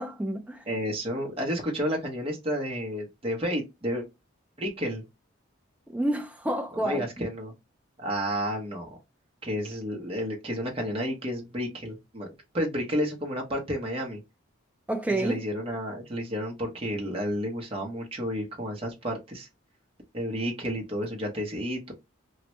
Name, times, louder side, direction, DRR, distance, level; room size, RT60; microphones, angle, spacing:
voice 1, 0.0-0.6 5.9-7.1 14.9-15.4, right 1 dB, 5° right, 0.4 m, -29 dB
voice 2, 0.7-4.1 4.6-5.0 6.8-7.5 8.0-8.9 9.4-12.3 12.5-14.2 15.1-19.5 20.1-21.9, equal, 25° right, 0.7 m, -31 dB
3.1 x 2.1 x 2.9 m
head